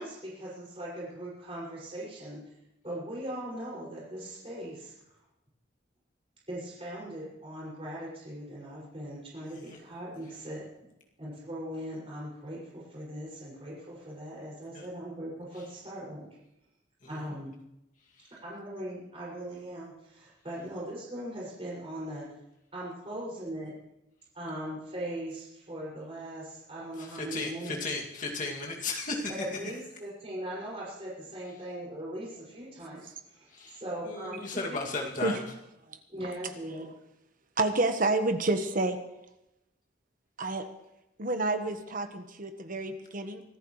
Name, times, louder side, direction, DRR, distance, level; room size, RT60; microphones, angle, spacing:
voice 1, 0.0-2.4 2.8-4.9 6.5-10.6 11.2-16.3 17.1-17.5 18.4-22.3 22.7-23.7 24.3-27.8 29.3-34.8 36.1-36.9, right 1 dB, 30° right, -6 dB, 6.2 m, -39 dB
voice 2, 27.0-29.3 33.5-33.8 34.1-35.4, left 3 dB, 45° left, -1 dB, 2.5 m, -35 dB
voice 3, 37.6-39.0 40.4-40.6 41.2-43.4, right 2 dB, 50° right, 8 dB, 1.3 m, -29 dB
24.5 x 14.0 x 3.2 m, 0.88 s
head